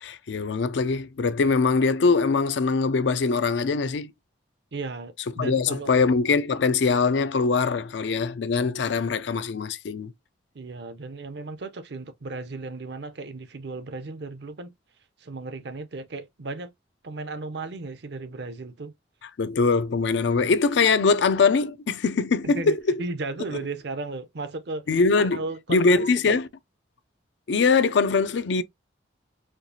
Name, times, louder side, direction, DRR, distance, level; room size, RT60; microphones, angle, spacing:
voice 1, 0.0-4.1 5.4-10.1 19.4-22.8 24.9-25.4 25.7-26.4 27.5-28.6, left 4 dB, 70° left, 0.4 m, -22 dB
voice 2, 4.7-6.0 10.5-14.7 15.2-16.7 17.0-18.9 22.4-24.9 25.2-26.4, right 3 dB, 60° right, 0.6 m, -35 dB
4.4 x 2.4 x 2.6 m
head